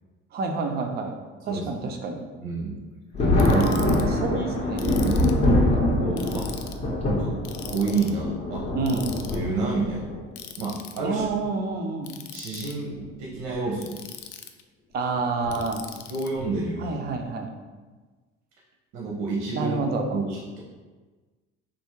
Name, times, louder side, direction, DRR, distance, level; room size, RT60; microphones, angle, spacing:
voice 1, 0.3-1.2 1.4-2.2 3.5-4.9 8.7-9.2 11.0-12.2 14.9-15.9 16.8-17.5 19.5-20.2, right 4 dB, 35° right, 4 dB, 0.4 m, -28 dB
voice 2, 2.4-2.8 3.3-3.7 4.3-4.4 4.8-5.4 6.0-6.5 7.2-7.4 7.7-8.7 9.3-10.0 10.6-11.2 12.3-14.0 16.1-17.0 18.9-19.8 20.1-20.6, right 3 dB, 90° right, -3 dB, 0.9 m, -29 dB
Thunder, 3.1-10.2 11.2-11.3 12.8-13.0 13.4-13.5 15.4-15.7 16.4-16.7, left 1 dB, 20° left, 0.6 m, -24 dB
Ratchet pawl, 3.4-4.0 4.8-5.4 6.2-6.8 7.4-8.1 8.9-9.4 10.4-11.0 12.0-12.7 13.8-14.6 15.5-16.3, left 10 dB, 80° left, 0.4 m, -41 dB
3.6 x 2.6 x 4.3 m, 1.3 s
cardioid pair, 170°, 29 cm